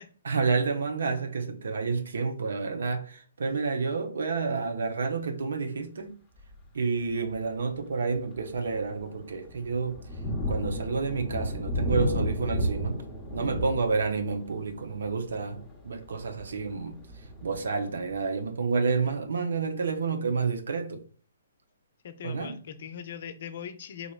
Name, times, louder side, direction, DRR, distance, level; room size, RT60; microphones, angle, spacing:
voice 1, 0.2-6.2 6.7-10.0 10.5-13.0 13.3-17.0 17.4-21.0 22.2-22.6, right 4 dB, 70° right, 0.7 m, -29 dB
Thunder, 6.4-6.7 7.3-7.4 7.9-18.4, equal, 10° left, 0.8 m, -34 dB
voice 2, 22.0-24.1, left 8 dB, 55° left, 0.5 m, -40 dB
3.9 x 3.0 x 2.4 m
hypercardioid pair, 135°, 0 cm